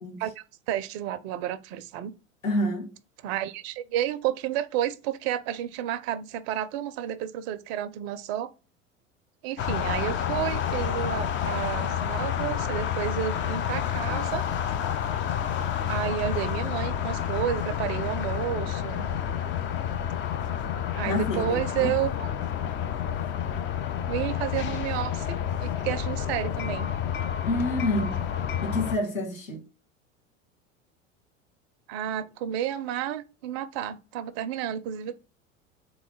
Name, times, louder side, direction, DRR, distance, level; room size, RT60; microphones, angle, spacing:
voice 1, 0.2-2.1 3.2-8.5 9.4-14.4 15.9-19.1 20.9-22.3 24.1-26.9 31.9-35.2, right 11 dB, 55° right, 0.5 m, -31 dB
voice 2, 2.4-2.9 21.1-21.9 27.4-28.2 28.6-29.6, left 1 dB, 85° left, 1.4 m, -28 dB
sound 1, 9.6-29.0, left 9 dB, 30° left, 0.5 m, -29 dB
3.8 x 3.0 x 3.7 m
figure-of-eight pair, 80°, 39 cm